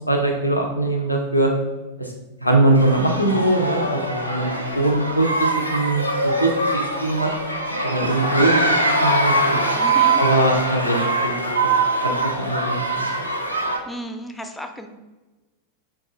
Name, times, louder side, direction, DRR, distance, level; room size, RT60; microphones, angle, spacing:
voice 1, 0.1-1.5 2.0-2.1 2.4-7.3 7.8-9.6 10.2-11.7 12.0-13.2, right 2 dB, 85° left, 1 dB, 0.5 m, -21 dB
sound 1, 2.8-13.8, right 2 dB, 90° right, 0.5 m, -22 dB
voice 2, 9.8-10.2 13.9-14.9, equal, 5° left, 7 dB, 0.4 m, -33 dB
5.2 x 2.3 x 3.0 m, 1.2 s
figure-of-eight pair, 90°, 0 cm